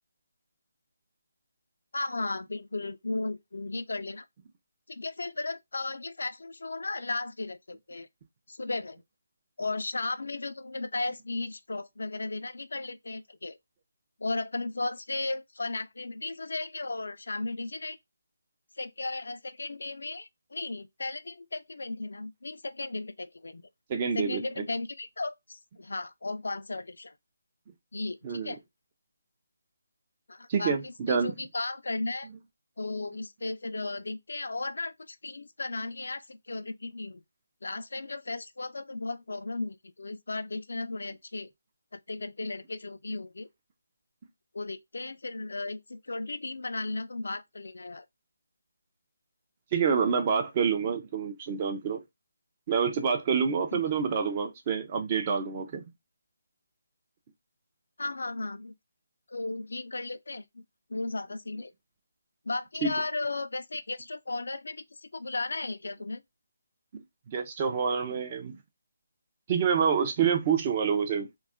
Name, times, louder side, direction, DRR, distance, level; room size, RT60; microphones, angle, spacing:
voice 1, 1.9-4.3 4.9-8.1 8.5-9.0 9.6-13.6 14.2-18.0 18.8-23.6 24.1-27.1 27.9-28.6 30.3-32.3 32.8-37.2 37.6-41.5 41.9-43.5 44.5-48.0 53.7-53.8 58.0-58.7 59.3-60.6 60.9-61.7 62.5-66.2, left 2 dB, 75° left, 0.4 m, -35 dB
voice 2, 23.9-24.4 28.2-28.5 30.5-31.3 49.7-52.0 52.7-55.8 62.8-62.9 67.3-68.6 69.5-71.3, right 6 dB, 30° right, 0.5 m, -27 dB
2.3 x 2.0 x 3.5 m
figure-of-eight pair, 160°, 0 cm